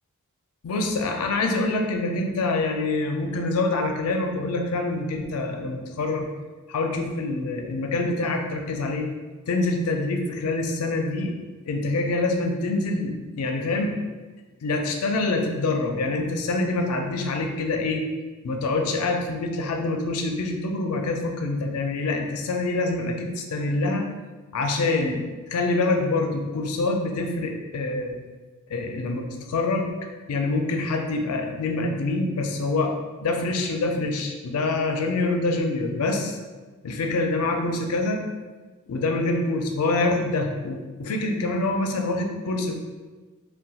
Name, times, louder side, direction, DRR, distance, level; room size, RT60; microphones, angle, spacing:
voice 1, 0.6-6.3 6.7-9.1 9.5-11.3 11.7-13.9 14.6-18.0 18.4-24.1 24.5-28.2 28.7-29.9 30.3-32.9 33.2-36.4 36.8-38.2 38.9-42.7, left 2 dB, 75° left, 3 dB, 0.4 m, -25 dB
3.9 x 2.2 x 2.3 m, 1.3 s
head